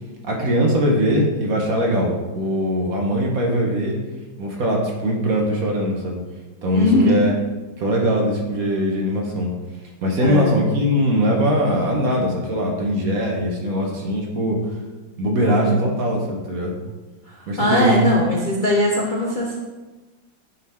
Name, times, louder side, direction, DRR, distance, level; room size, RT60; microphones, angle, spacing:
voice 1, 0.2-4.0 4.4-6.2 6.6-7.3 7.8-9.5 10.0-14.6 15.2-16.8 17.5-18.2, equal, 55° right, -1 dB, 1.3 m, -21 dB
voice 2, 6.7-7.3 10.2-10.6 15.4-15.8 17.3-19.6, left 1 dB, 35° left, -4 dB, 0.8 m, -20 dB
9.4 x 3.7 x 4.3 m, 1.2 s
omnidirectional pair, 2.1 m